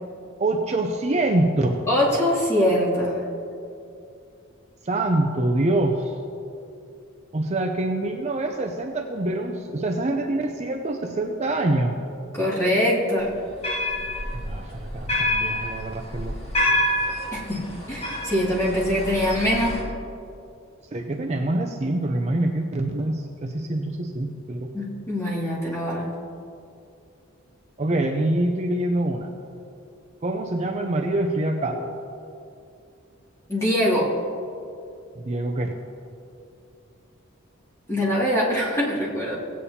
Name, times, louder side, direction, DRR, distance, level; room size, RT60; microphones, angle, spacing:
voice 1, 0.4-1.8 4.8-6.1 7.3-12.1 14.3-16.4 20.9-24.7 27.8-29.3 30.2-31.9 35.2-35.7, right 1 dB, 30° right, 2 dB, 0.5 m, -25 dB
voice 2, 1.9-3.2 12.3-13.3 17.3-19.8 24.7-26.1 33.5-34.1 37.9-39.4, equal, 15° left, -7 dB, 2.3 m, -23 dB
sound 1, 13.3-19.8, left 1 dB, 30° left, 1.6 m, -27 dB
18.0 x 8.5 x 2.8 m, 2.6 s
head